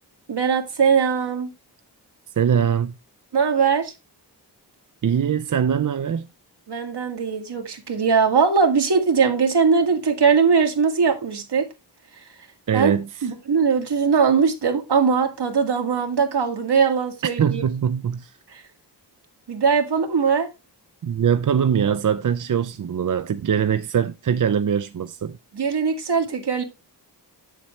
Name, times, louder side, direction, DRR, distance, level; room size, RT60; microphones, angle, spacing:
voice 1, 0.3-1.5 3.3-3.9 6.7-11.7 12.7-12.9 13.2-17.6 18.5-18.6 19.5-20.5 25.5-26.6, right 5 dB, 75° right, 2.0 m, -20 dB
voice 2, 2.4-2.9 5.0-6.3 12.7-13.3 17.4-18.3 21.0-25.4, right 8 dB, 50° right, 0.5 m, -22 dB
8.8 x 7.4 x 3.1 m
wide cardioid pair, 105°, 41 cm